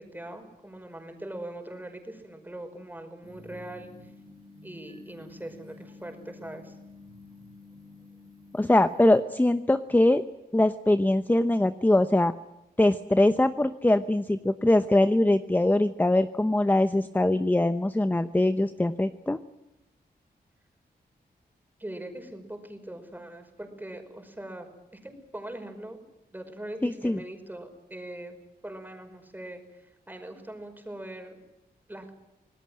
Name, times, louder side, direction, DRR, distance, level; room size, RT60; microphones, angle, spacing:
voice 1, 0.0-4.1 4.6-6.8 21.8-26.0 26.3-28.4 28.6-31.4 31.9-32.1, right 1 dB, 10° right, 5 dB, 5.5 m, -41 dB
sound 1, 3.2-9.2, left 2 dB, 35° right, 5.3 m, -50 dB
voice 2, 8.5-10.2 10.5-12.3 12.8-19.4 26.8-27.2, left 1 dB, 10° left, 11 dB, 0.9 m, -22 dB
27.0 x 19.5 x 7.7 m, 0.97 s
wide cardioid pair, 105°, 16 cm